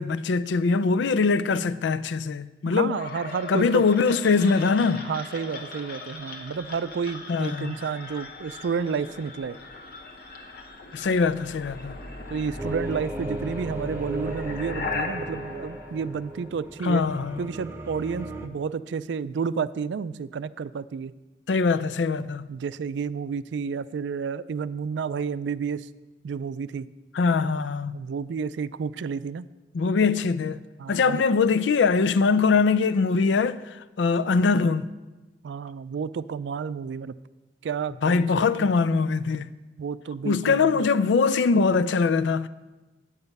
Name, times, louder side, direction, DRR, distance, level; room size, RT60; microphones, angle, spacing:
voice 1, 0.0-3.0 3.5-5.1 7.3-7.8 10.9-11.9 16.8-17.5 21.5-22.5 27.1-28.0 29.7-30.6 30.9-33.6 34.0-34.9 38.0-39.5 40.2-42.5, left 4 dB, 85° left, 0.4 m, -22 dB
voice 2, 2.6-3.8 5.1-9.6 12.3-17.1 17.4-21.1 22.5-25.9 26.2-26.9 27.9-29.5 30.8-31.2 35.4-37.1 37.6-38.7 39.8-40.9, right 6 dB, 75° right, 0.3 m, -31 dB
sound 1, 2.9-16.8, left 3 dB, 60° left, 1.0 m, -39 dB
sound 2, 12.6-18.5, right 1 dB, 15° right, 0.6 m, -36 dB
9.1 x 8.1 x 5.3 m
head